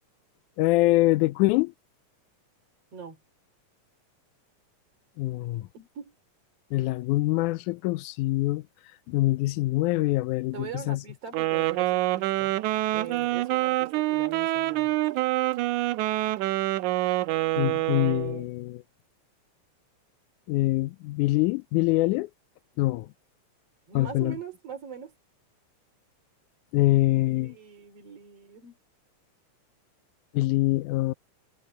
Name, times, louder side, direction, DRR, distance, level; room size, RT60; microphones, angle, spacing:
voice 1, 0.6-1.7 5.2-5.7 6.7-8.6 9.1-11.0 17.6-18.8 20.5-22.3 22.8-23.1 24.0-24.4 26.7-27.6 30.3-31.1, left 18 dB, 80° left, 2.1 m, -24 dB
voice 2, 5.7-6.2 10.5-12.5 12.9-15.0 23.9-25.1 27.3-28.8, right 7 dB, 50° right, 3.8 m, -42 dB
Wind instrument woodwind instrument, 11.3-18.4, right 17 dB, 80° right, 2.1 m, -26 dB
omnidirectional pair, 3.6 m